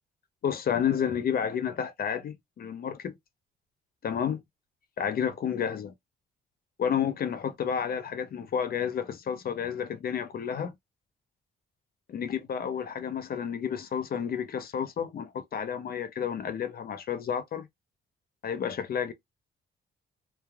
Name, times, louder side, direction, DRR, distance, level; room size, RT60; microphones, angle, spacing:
voice 1, 0.4-3.1 4.0-4.4 5.0-5.9 6.8-10.7 12.1-17.7 18.4-19.1, left 8 dB, 50° left, 0.5 m, -30 dB
3.2 x 2.2 x 2.2 m
cardioid pair, 90°, 20 cm